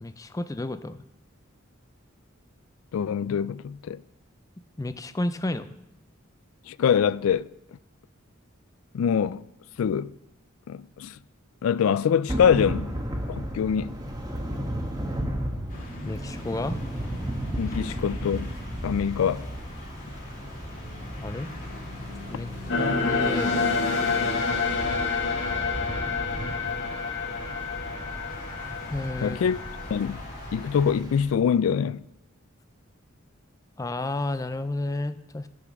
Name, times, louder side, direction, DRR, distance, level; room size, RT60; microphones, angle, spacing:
voice 1, 0.0-1.0 4.8-5.7 16.0-16.8 21.2-21.5 22.3-22.5 22.8-23.7 28.9-29.4 33.8-35.5, left 2 dB, 15° left, 0.4 m, -31 dB
voice 2, 2.9-4.0 6.7-7.5 8.9-9.4 9.8-10.1 10.7-11.2 11.6-12.9 13.3-14.0 17.6-18.5 18.8-19.5 29.2-29.6 29.9-30.2 30.5-32.0, left 7 dB, 85° left, 0.3 m, -24 dB
Thunder / Rain, 12.3-31.3, equal, 20° right, 1.1 m, -35 dB
sound 1, 15.7-30.9, left 1 dB, 40° left, 2.4 m, -41 dB
sound 2, 22.7-29.9, left 4 dB, 60° left, 1.3 m, -28 dB
13.5 x 6.0 x 6.0 m
head